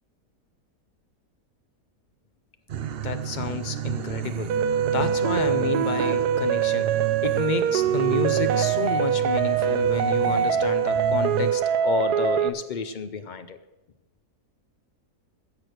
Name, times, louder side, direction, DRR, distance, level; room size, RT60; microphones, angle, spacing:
sound 1, 2.7-11.5, right 11 dB, 60° right, 0.6 m, -32 dB
voice 1, 3.0-4.5 4.9-6.9 7.2-13.6, left 6 dB, 75° left, 9 dB, 0.4 m, -30 dB
sound 2, 4.5-12.5, right 7 dB, 80° right, 1.2 m, -23 dB
17.0 x 6.3 x 6.6 m, 1.0 s
omnidirectional pair, 1.7 m